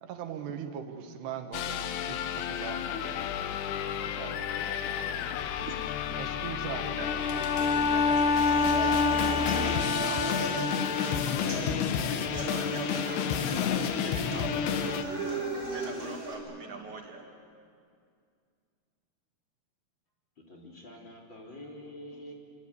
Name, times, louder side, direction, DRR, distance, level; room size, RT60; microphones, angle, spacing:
voice 1, 0.0-3.1 4.1-4.6 5.7-5.8 6.2-7.9, right 8 dB, 90° right, 6 dB, 3.6 m, -41 dB
sound 1, 1.5-15.0, left 9 dB, 80° left, 3.1 m, -31 dB
Bowed string instrument, 7.0-11.6, left 4 dB, 65° left, 1.3 m, -28 dB
voice 2, 7.3-13.4 13.7-15.4 15.7-17.2, right 4 dB, 50° right, 1 dB, 3.7 m, -43 dB
sound 2, 8.4-16.3, right 2 dB, 25° right, 7.0 m, -36 dB
voice 3, 20.5-22.3, left 1 dB, 30° left, -1 dB, 3.7 m, -46 dB
27.5 x 25.5 x 8.4 m, 2.3 s
omnidirectional pair, 4.6 m